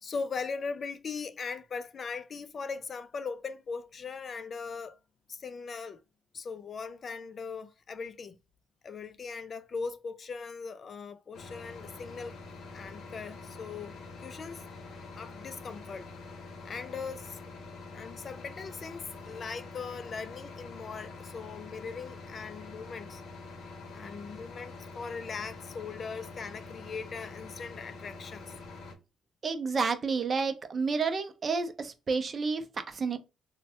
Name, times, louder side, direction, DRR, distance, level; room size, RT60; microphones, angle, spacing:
voice 1, 0.0-5.0 5.3-6.0 6.3-8.4 8.8-12.4 12.7-14.7 15.2-16.1 16.6-17.4 17.9-23.2 23.9-28.5, left 5 dB, 45° left, 0.3 m, -39 dB
sound 1, 11.3-28.9, left 3 dB, 75° left, 0.7 m, -46 dB
voice 2, 29.4-33.2, right 4 dB, 40° right, 0.5 m, -30 dB
3.2 x 2.1 x 2.8 m
cardioid pair, 90°, 0 cm